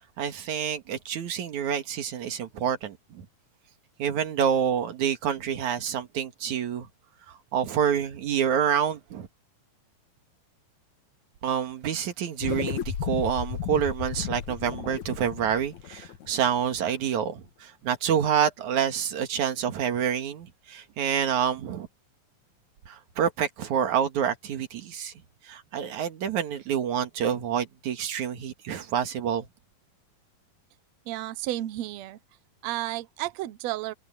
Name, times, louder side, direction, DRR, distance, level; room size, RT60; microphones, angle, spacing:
voice 1, 0.2-3.3 4.0-6.9 7.3-9.3 11.4-21.9 22.9-25.1 25.5-29.5, right 8 dB, 60° right, 3.0 m, -27 dB
sound 1, 12.4-17.1, left 9 dB, 60° left, 2.4 m, -34 dB
voice 2, 31.1-32.2 32.6-33.9, right 15 dB, 75° right, 1.6 m, -32 dB
omnidirectional pair, 4.1 m